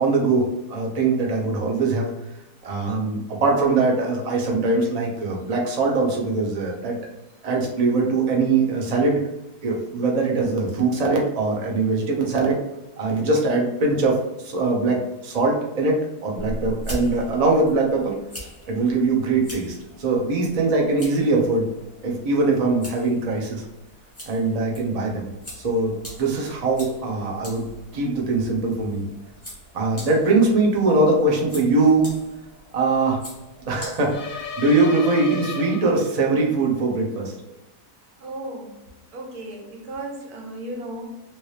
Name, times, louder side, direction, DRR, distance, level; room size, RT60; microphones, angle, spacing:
voice 1, 0.0-2.1 2.6-7.0 7.4-9.2 9.6-12.6 13.0-18.1 18.7-21.7 22.0-23.6 24.3-25.3 25.6-25.9 26.2-27.6 27.9-29.0 29.7-32.1 32.7-33.2 33.7-37.3, right 3 dB, 55° right, -1 dB, 0.4 m, -22 dB
sound 1, 16.4-34.7, equal, 10° left, 0.8 m, -41 dB
sound 2, 34.1-36.4, left 4 dB, 70° left, 0.9 m, -34 dB
voice 2, 38.2-38.8 39.1-41.1, right 1 dB, 75° right, 1 dB, 1.2 m, -35 dB
2.9 x 2.7 x 3.1 m, 0.97 s
omnidirectional pair, 1.7 m